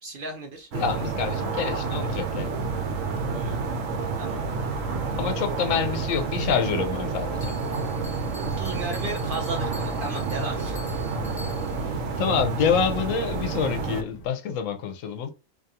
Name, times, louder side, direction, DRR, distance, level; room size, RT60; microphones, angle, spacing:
voice 1, 0.0-0.7 3.3-3.8 4.2-4.5 8.5-10.8, right 2 dB, 55° right, 0.6 m, -35 dB
voice 2, 0.7-2.6 5.2-7.6 12.2-15.3, left 7 dB, 85° left, 1.0 m, -27 dB
sound 1, 0.7-14.0, right 4 dB, 85° right, 1.0 m, -29 dB
sound 2, 2.5-14.3, right 1 dB, 50° left, 1.0 m, -47 dB
Bell, 7.4-11.9, left 2 dB, 25° left, 0.6 m, -47 dB
2.6 x 2.3 x 2.7 m
omnidirectional pair, 1.3 m